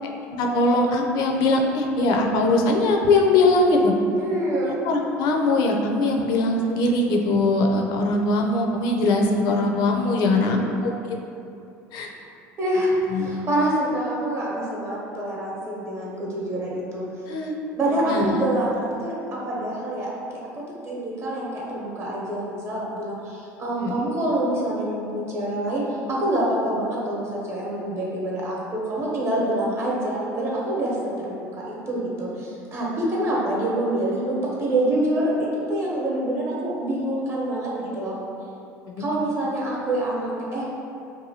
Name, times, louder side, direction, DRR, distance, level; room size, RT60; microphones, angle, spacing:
voice 1, 0.3-3.9 4.6-10.9 11.9-12.1 13.1-13.3 17.3-17.5 18.1-18.3 23.8-23.9 39.0-39.1, left 2 dB, 65° left, 1 dB, 0.4 m, -21 dB
voice 2, 4.2-4.8 10.2-10.7 12.6-17.0 17.7-20.1 20.5-38.2 39.0-40.7, right 1 dB, 35° right, -5 dB, 0.8 m, -26 dB
2.7 x 2.2 x 2.7 m, 2.7 s
hypercardioid pair, 80°, 8 cm